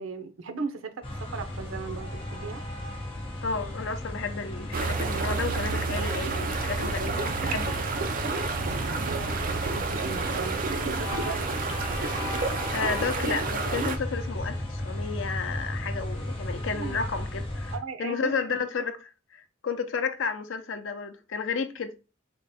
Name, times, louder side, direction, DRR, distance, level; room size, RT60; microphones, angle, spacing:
voice 1, 0.0-2.6 9.0-11.4 16.7-17.0 17.7-18.6, right 5 dB, 90° right, 0.6 m, -37 dB
sound 1, 1.0-17.8, left 1 dB, 25° left, 0.8 m, -35 dB
voice 2, 3.4-7.8 12.7-17.7 18.0-21.9, left 5 dB, 70° left, 0.5 m, -32 dB
sound 2, 4.7-14.0, right 4 dB, 45° right, 0.4 m, -30 dB
3.6 x 2.2 x 4.1 m
head